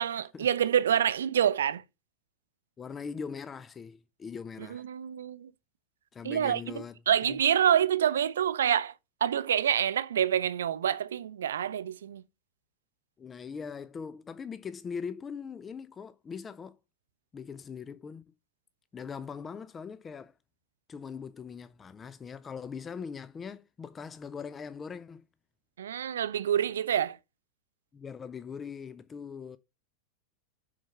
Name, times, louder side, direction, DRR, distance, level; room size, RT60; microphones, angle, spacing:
voice 1, 0.0-1.8 4.7-5.5 6.2-8.9 9.2-12.2 25.8-27.2, right 9 dB, 65° right, 0.6 m, -27 dB
voice 2, 2.8-4.8 6.1-6.9 7.2-7.4 13.2-16.8 17.3-18.2 18.9-20.3 20.9-25.3 27.9-29.6, left 6 dB, 20° left, 0.5 m, -41 dB
7.3 x 5.7 x 5.5 m
figure-of-eight pair, 90°, 0 cm